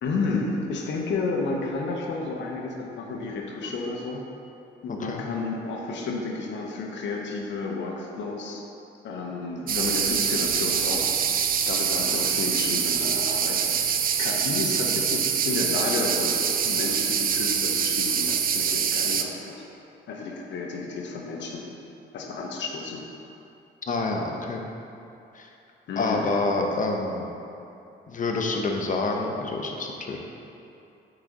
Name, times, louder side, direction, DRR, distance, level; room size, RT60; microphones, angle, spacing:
voice 1, 0.0-4.2 4.8-8.6 9.0-19.5 20.1-21.7 22.1-23.1 25.9-26.3, left 3 dB, 65° left, 0 dB, 0.9 m, -31 dB
voice 2, 4.9-5.3 23.9-24.7 25.3-25.5 26.0-27.3 28.1-30.2, left 3 dB, 40° left, 1 dB, 0.8 m, -27 dB
sound 1, 9.7-19.2, right 7 dB, 45° right, 0.5 m, -25 dB
8.1 x 4.0 x 3.8 m, 2.8 s
cardioid pair, 90°, 20 cm